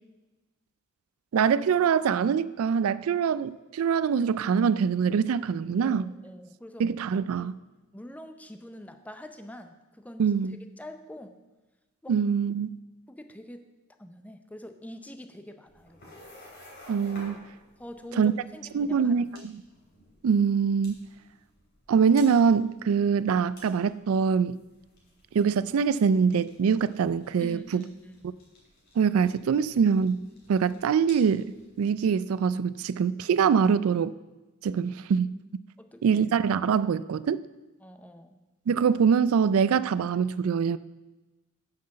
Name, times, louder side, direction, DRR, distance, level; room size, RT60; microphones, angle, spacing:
voice 1, 1.3-6.1 6.8-7.5 10.2-10.6 12.1-12.7 16.9-17.4 18.2-18.3 18.7-19.6 20.2-21.0 21.9-24.6 25.3-27.8 29.0-34.1 34.6-35.3 36.0-37.4 38.7-40.8, right 6 dB, 75° right, 0.3 m, -24 dB
voice 2, 5.8-6.8 7.9-10.2 10.8-11.3 12.0-12.1 13.1-13.6 14.0-16.2 17.8-19.4 27.4-28.2 35.8-36.2 37.8-38.4, left 1 dB, 5° left, 0.6 m, -44 dB
sound 1, 15.6-31.9, left 1 dB, 50° left, 3.0 m, -54 dB
9.6 x 5.9 x 6.4 m
head